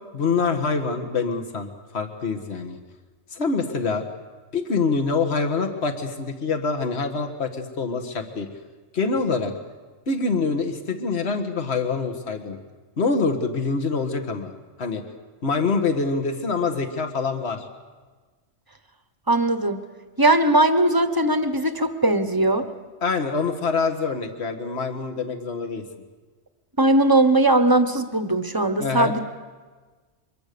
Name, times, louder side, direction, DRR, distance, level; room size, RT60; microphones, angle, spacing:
voice 1, 0.1-2.8 3.3-4.0 4.5-8.5 8.9-9.5 10.1-12.6 13.0-14.5 14.8-15.0 15.4-17.6 23.0-25.8 28.8-29.2, left 4 dB, 55° left, 4 dB, 2.0 m, -25 dB
voice 2, 19.3-19.8 20.2-22.7 26.8-29.2, right 2 dB, 20° right, 9 dB, 1.2 m, -19 dB
24.5 x 21.5 x 6.9 m, 1.4 s
omnidirectional pair, 1.3 m